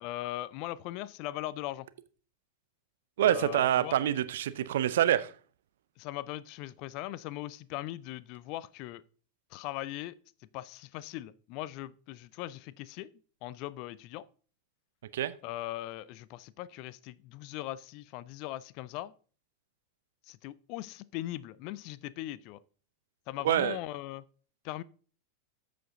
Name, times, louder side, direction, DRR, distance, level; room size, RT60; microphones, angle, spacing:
voice 1, 0.0-1.9 3.2-4.0 6.0-9.0 9.5-10.2 10.5-13.1 13.4-14.3 15.4-19.1 20.3-22.6 23.3-24.2 24.6-24.8, left 15 dB, 45° left, 0.4 m, -39 dB
voice 2, 3.2-5.3 15.1-15.3 23.4-23.8, right 11 dB, 60° right, 0.6 m, -26 dB
13.5 x 5.2 x 3.8 m
figure-of-eight pair, 90°, 0 cm